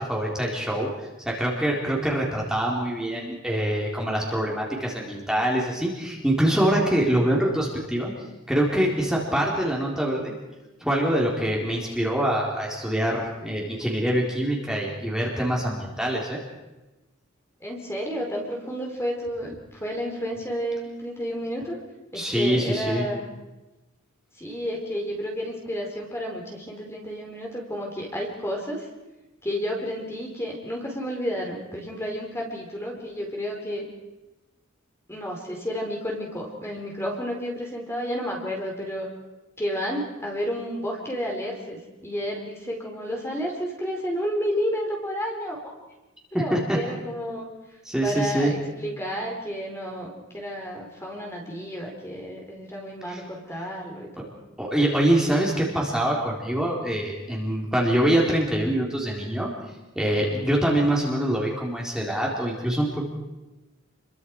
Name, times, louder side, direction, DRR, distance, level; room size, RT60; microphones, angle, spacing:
voice 1, 0.0-8.1 8.5-10.3 10.8-16.4 22.1-23.1 46.5-46.8 47.8-48.5 53.1-53.2 54.6-59.5 59.9-63.0, right 1 dB, 5° right, -3 dB, 4.1 m, -24 dB
voice 2, 17.6-21.8 22.1-23.3 24.4-28.9 29.4-33.9 35.1-39.1 39.6-45.7 46.3-47.5 48.0-54.3, equal, 15° left, 0 dB, 4.3 m, -31 dB
30.0 x 23.5 x 4.8 m, 1.1 s
head